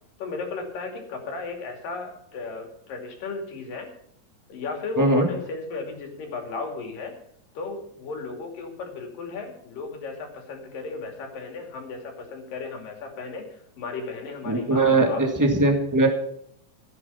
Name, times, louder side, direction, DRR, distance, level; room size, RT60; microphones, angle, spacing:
voice 1, 0.2-3.9 4.5-7.1 7.5-15.2, left 4 dB, 70° left, 3 dB, 4.3 m, -35 dB
voice 2, 5.0-5.3 14.5-16.1, right 2 dB, 10° right, 3 dB, 0.8 m, -20 dB
15.5 x 9.2 x 5.7 m, 0.69 s
omnidirectional pair, 4.1 m